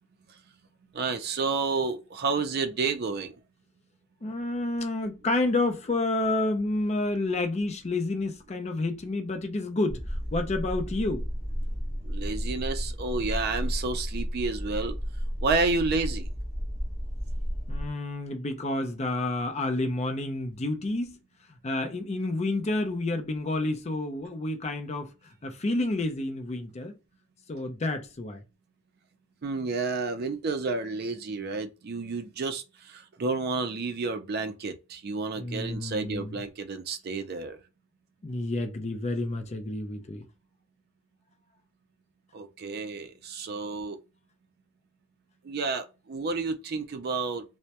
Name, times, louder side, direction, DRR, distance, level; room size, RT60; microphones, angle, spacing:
voice 1, 0.9-3.3 12.1-15.0 15.4-16.3 29.4-32.6 32.9-37.6 42.3-44.0 45.5-47.4, right 4 dB, 50° right, 0.4 m, -30 dB
voice 2, 4.2-10.0 10.3-11.2 17.7-21.2 21.6-25.1 25.4-26.9 27.5-28.4 35.4-36.4 38.2-40.2, left 2 dB, 30° left, 0.4 m, -29 dB
sound 1, 9.9-17.9, equal, ahead, 0.8 m, -32 dB
2.2 x 2.1 x 2.7 m
head